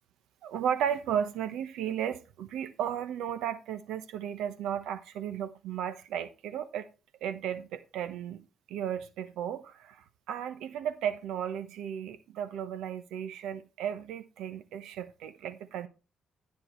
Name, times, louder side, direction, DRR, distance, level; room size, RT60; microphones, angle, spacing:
voice 1, 0.4-6.9 7.2-8.4 8.7-15.9, right 9 dB, 90° right, 1.0 m, -34 dB
10.5 x 9.5 x 3.2 m
cardioid pair, 90°, 0 cm